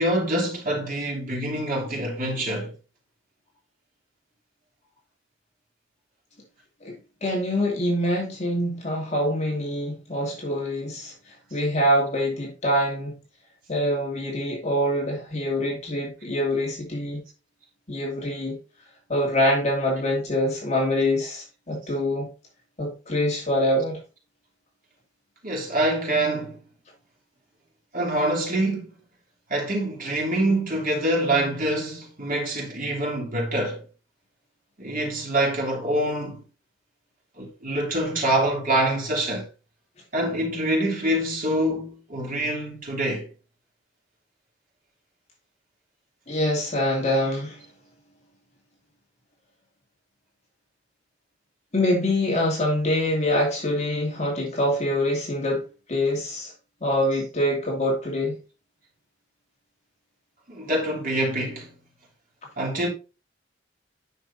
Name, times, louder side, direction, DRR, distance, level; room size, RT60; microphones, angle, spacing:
voice 1, 0.0-2.7 25.4-26.6 27.9-28.9 29.5-33.8 34.8-36.4 37.4-39.5 40.1-43.3 60.5-61.7 62.6-62.9, right 1 dB, 45° right, 3.1 m, -25 dB
voice 2, 7.2-11.1 11.5-13.2 13.7-17.2 17.9-18.6 19.1-22.3 22.8-24.0 46.3-47.6 51.7-56.5 56.8-58.4, left 1 dB, 35° left, 2.6 m, -25 dB
9.6 x 6.2 x 2.7 m
head